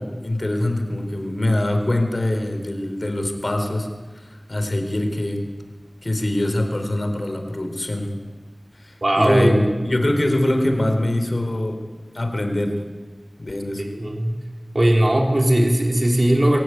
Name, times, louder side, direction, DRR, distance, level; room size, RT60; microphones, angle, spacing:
voice 1, 0.0-3.9 4.2-4.3 4.5-5.4 6.0-8.1 8.8-11.8 12.1-12.7 13.4-13.8, left 1 dB, 50° left, 5 dB, 4.1 m, -23 dB
voice 2, 9.0-9.9 13.8-14.4 14.7-16.6, right 1 dB, 45° right, 1 dB, 3.7 m, -18 dB
25.0 x 15.0 x 9.4 m, 1.4 s
wide cardioid pair, 55°, 0 cm